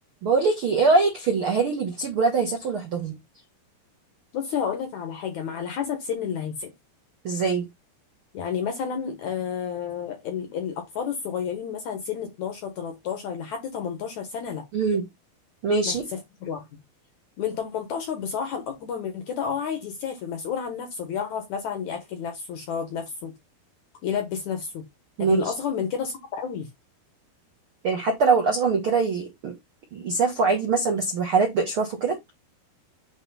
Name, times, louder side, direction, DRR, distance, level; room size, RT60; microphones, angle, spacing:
voice 1, 0.2-3.2 7.2-7.7 14.7-15.0 15.6-16.0 25.2-25.5 27.8-29.5 29.9-32.2, right 4 dB, 65° right, 1.3 m, -23 dB
voice 2, 4.3-6.7 8.3-14.6 15.9-16.6 17.4-23.3 24.0-24.8 25.2-26.7, left 7 dB, 65° left, 1.9 m, -31 dB
8.1 x 3.0 x 5.4 m
omnidirectional pair, 4.6 m